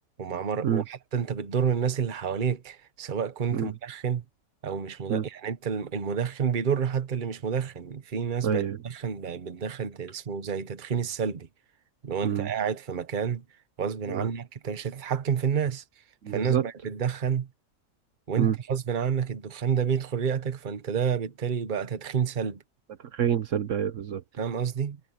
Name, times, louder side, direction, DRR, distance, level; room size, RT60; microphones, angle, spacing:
voice 1, 0.2-4.2 4.6-11.5 12.0-13.4 13.8-15.8 16.3-17.5 18.3-22.6 24.4-25.0, right 7 dB, 40° right, 1.1 m, -29 dB
voice 2, 8.4-8.8 12.2-12.5 14.1-14.2 16.2-16.6 18.4-18.5 23.1-24.2, right 9 dB, 65° right, 1.2 m, -26 dB
omnidirectional pair, 1.5 m